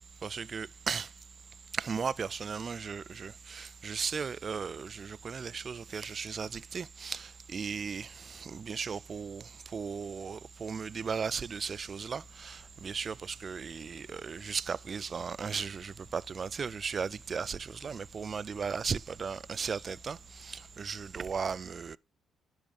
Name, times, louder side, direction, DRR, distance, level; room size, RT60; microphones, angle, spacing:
voice 1, 0.2-1.1 1.7-22.0, right 6 dB, 40° right, 0.3 m, -36 dB
sound 1, 11.1-21.1, left 4 dB, 50° left, 2.5 m, -61 dB
10.0 x 3.6 x 5.3 m
cardioid pair, 90°, 0 cm